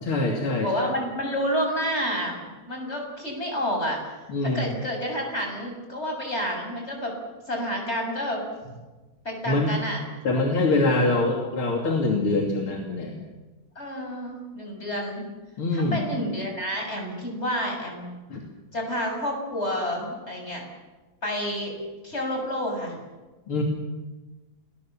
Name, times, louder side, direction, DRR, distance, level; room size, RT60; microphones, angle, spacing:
voice 1, 0.0-0.7 4.3-4.7 9.5-9.7 10.2-13.2 15.6-16.1 18.3-18.4 23.5-23.6, left 2 dB, 90° left, 0 dB, 3.7 m, -24 dB
voice 2, 0.6-4.0 4.4-7.1 7.5-8.4 9.2-10.0 13.8-15.3 15.7-18.1 18.7-20.6 21.2-21.7 22.0-23.0, equal, 30° left, 2 dB, 7.4 m, -29 dB
29.5 x 21.5 x 7.4 m, 1.2 s
omnidirectional pair, 2.3 m